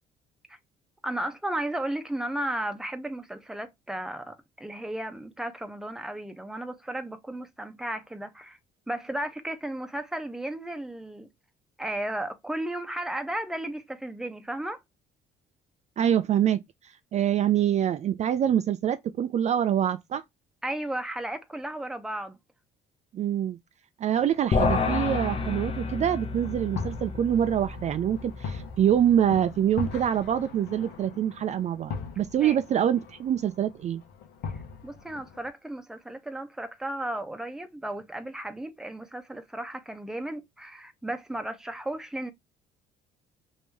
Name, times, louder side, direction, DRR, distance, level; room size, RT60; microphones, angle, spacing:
voice 1, 1.0-8.6 8.9-11.3 11.8-14.8 20.6-22.4 32.3-32.6 34.5-42.3, right 1 dB, 5° right, 0.7 m, -34 dB
voice 2, 16.0-16.6 17.1-20.2 23.1-23.6 24.0-34.0, right 10 dB, 40° right, 0.4 m, -25 dB
sound 1, 24.1-35.5, left 5 dB, 80° left, 1.0 m, -40 dB
sound 2, 24.5-30.0, left 4 dB, 35° left, 0.8 m, -31 dB
3.0 x 2.7 x 3.3 m
cardioid pair, 110°, 17 cm